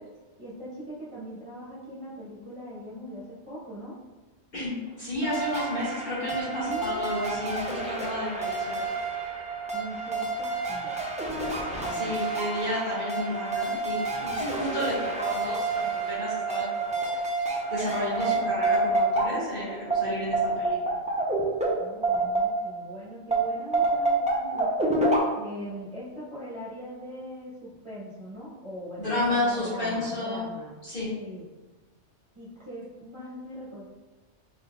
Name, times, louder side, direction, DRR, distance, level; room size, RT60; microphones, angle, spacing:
voice 1, 0.4-4.0 6.2-7.1 9.7-11.0 11.7-12.2 21.8-30.8 31.1-31.4 32.3-33.9, equal, 25° right, -10 dB, 1.2 m, -41 dB
voice 2, 4.5-8.8 11.9-17.2 17.7-20.8 29.0-30.5 30.8-31.1, left 1 dB, 45° left, -9 dB, 1.7 m, -31 dB
sound 1, 5.2-22.9 23.3-25.2, right 3 dB, 10° right, 0.3 m, -28 dB
sound 2, 6.6-11.9, equal, 80° left, 1.8 m, -47 dB
4.1 x 3.9 x 2.3 m, 1.2 s
omnidirectional pair, 1.2 m